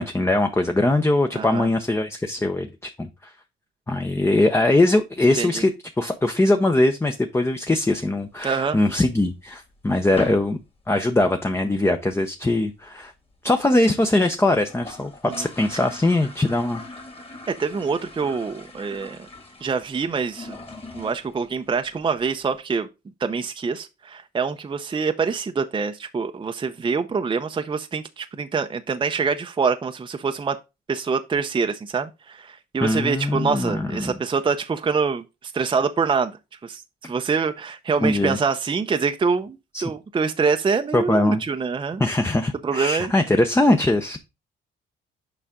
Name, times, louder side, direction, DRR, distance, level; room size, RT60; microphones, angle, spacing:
voice 1, 0.0-3.3 3.9-5.7 6.0-10.6 10.9-13.1 13.4-16.8 32.8-34.1 38.0-38.4 39.7-39.8 40.9-41.4 42.0-44.2, left 2 dB, 15° left, 0.7 m, -21 dB
voice 2, 1.3-1.7 5.4-5.6 8.4-8.8 15.2-15.5 15.7-15.8 17.5-19.3 19.6-20.6 20.9-22.9 23.2-30.6 30.9-36.3 36.6-42.0 42.6-43.1, right 5 dB, 25° right, 0.6 m, -25 dB
sound 1, 8.0-9.0 9.4-9.5 9.7-9.9 10.2-10.6 10.9-11.0 11.3-11.4 11.6-12.1 12.4-12.5 12.7-12.8 13.0-13.1 13.6-13.7 14.0-14.1 14.4-22.6, left 2 dB, 30° left, 2.3 m, -40 dB
6.9 x 5.0 x 3.6 m
cardioid pair, 90°, 20 cm